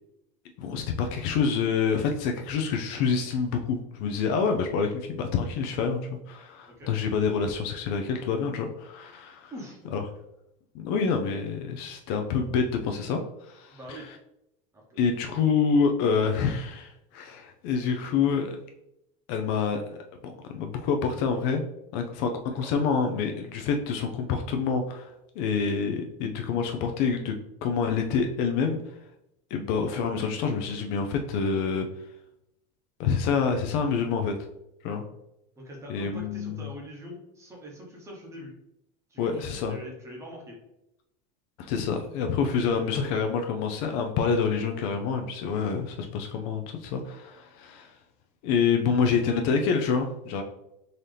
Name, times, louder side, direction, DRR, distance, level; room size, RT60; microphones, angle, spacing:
voice 1, 0.6-9.5 9.9-10.0 10.7-14.1 15.0-18.6 19.3-20.0 20.2-21.6 21.9-27.3 27.6-28.8 29.5-31.9 33.0-34.3 34.8-35.0 35.9-36.6 39.2-39.8 41.6-47.9 48.4-50.4, left 5 dB, 50° left, 4 dB, 0.5 m, -27 dB
voice 2, 9.5-9.8 13.7-14.1 14.7-15.0 22.6-22.7 35.6-38.5 39.1-40.6 42.7-43.1, equal, 15° right, -1 dB, 0.9 m, -43 dB
3.9 x 2.8 x 3.2 m, 0.84 s
supercardioid pair, 160°, 20 cm